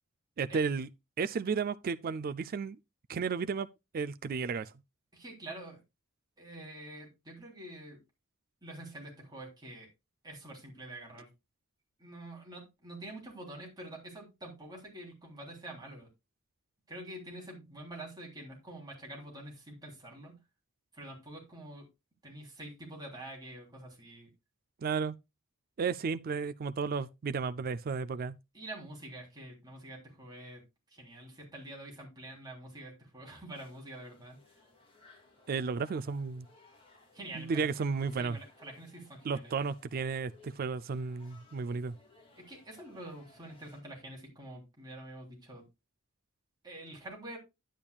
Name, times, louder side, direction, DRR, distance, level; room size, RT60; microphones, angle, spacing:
voice 1, 0.4-0.9 1.2-2.8 3.1-3.7 3.9-4.7 24.8-25.2 25.8-28.4 35.5-36.5 37.3-38.4 39.2-41.9, right 5 dB, 45° right, 0.4 m, -33 dB
voice 2, 5.1-5.8 6.4-8.0 8.6-9.9 10.2-11.3 12.0-16.1 16.9-20.4 20.9-21.9 22.2-24.3 28.5-30.6 30.9-34.4 37.1-37.9 38.2-39.6 42.4-45.6 46.6-47.4, right 1 dB, 20° right, 3.4 m, -46 dB
sound 1, 33.5-43.8, left 3 dB, 25° left, 2.5 m, -61 dB
10.0 x 8.8 x 2.3 m
head